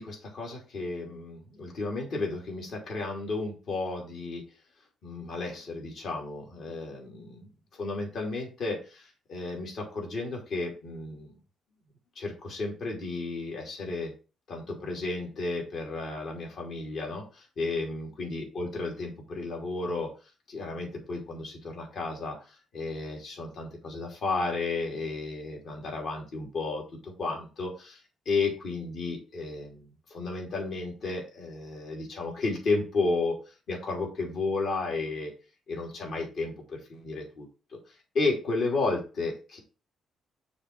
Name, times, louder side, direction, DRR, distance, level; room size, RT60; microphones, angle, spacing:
voice 1, 0.0-4.4 5.0-7.5 7.8-11.3 12.1-14.1 14.5-20.1 20.5-28.0 28.2-33.3 33.7-35.3 35.7-37.5 38.1-39.6, left 3 dB, 65° left, 0 dB, 3.0 m, -33 dB
6.7 x 3.8 x 6.0 m, 0.33 s
cardioid pair, 90°, 0 cm